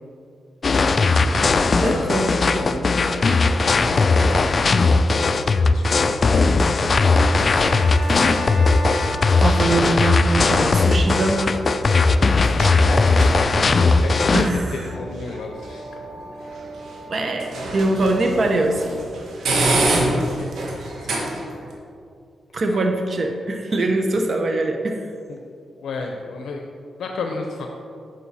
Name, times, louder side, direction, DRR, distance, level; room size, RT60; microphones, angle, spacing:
sound 1, 0.6-14.5, left 3 dB, 40° left, 0.4 m, -18 dB
voice 1, 0.7-8.2 12.2-16.1 17.7-18.6 20.1-20.5 21.0-21.3 22.7-22.8 23.1-23.4 23.7-23.8 25.3-25.5 25.8-26.6 27.0-27.7, left 3 dB, 80° left, 2 dB, 0.6 m, -34 dB
voice 2, 1.8-2.3 9.4-11.5 14.3-14.7 17.1-18.9 22.5-25.0, right 2 dB, 50° right, 4 dB, 0.7 m, -22 dB
sound 2, 4.3-21.7, right 2 dB, 85° right, 1.4 m, -30 dB
Bowed string instrument, 7.1-10.8, left 2 dB, 5° left, 1.1 m, -33 dB
9.3 x 6.1 x 4.2 m, 2.4 s
cardioid pair, 100°, 0 cm